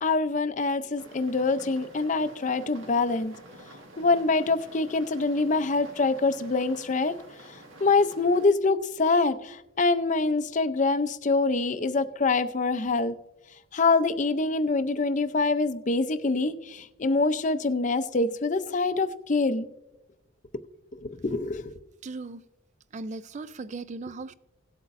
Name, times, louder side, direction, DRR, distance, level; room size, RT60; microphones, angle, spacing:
voice 1, 0.0-3.3 4.0-7.2 7.5-13.2 13.7-19.7 21.0-21.7, left 3 dB, 35° left, 0.5 m, -25 dB
sound 1, 1.0-8.5, right 1 dB, 75° right, 1.8 m, -49 dB
voice 2, 22.0-22.4 22.9-24.3, right 3 dB, 35° right, 0.3 m, -37 dB
18.0 x 8.0 x 2.5 m
head